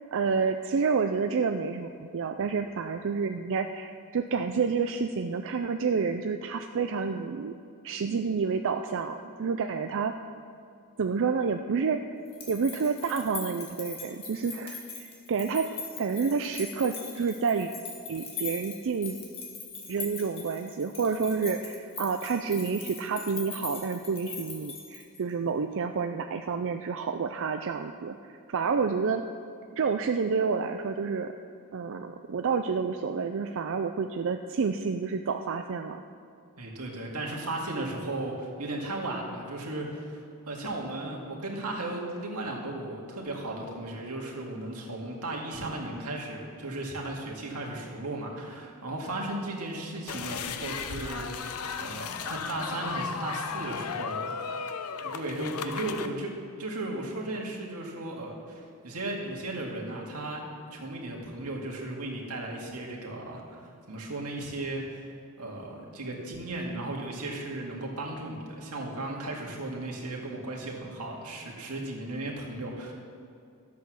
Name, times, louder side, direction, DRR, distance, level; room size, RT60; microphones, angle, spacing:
voice 1, 0.1-7.5 7.8-10.1 11.0-12.0 12.5-15.7 16.0-17.7 18.1-19.2 19.9-29.2 29.7-31.3 31.7-36.0, right 5 dB, 60° right, 6 dB, 0.4 m, -29 dB
sound 1, 12.3-25.3, left 4 dB, 25° left, 1.9 m, -41 dB
voice 2, 36.6-54.6 55.0-56.3 56.6-60.4 60.7-65.0 65.4-72.9, right 2 dB, 90° right, -1 dB, 2.2 m, -36 dB
sound 2, 50.1-56.1, left 6 dB, 80° left, 0.7 m, -35 dB
13.0 x 8.4 x 6.3 m, 2.4 s
head